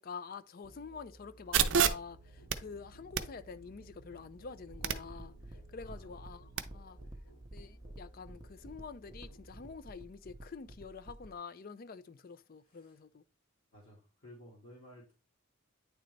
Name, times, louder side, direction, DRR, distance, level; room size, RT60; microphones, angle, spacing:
voice 1, 0.0-5.3 5.7-7.0 7.5-13.2, left 5 dB, 45° left, 0.4 m, -47 dB
Musical instrument, 0.6-9.9, right 1 dB, 80° left, 3.8 m, -58 dB
sound 1, 1.5-6.6, right 7 dB, 60° right, 0.5 m, -34 dB
sound 2, 4.6-11.3, right 1 dB, 20° right, 0.6 m, -51 dB
voice 2, 5.8-6.2 12.6-13.0 13.7-15.1, equal, 60° left, 2.0 m, -56 dB
9.3 x 3.9 x 3.2 m
head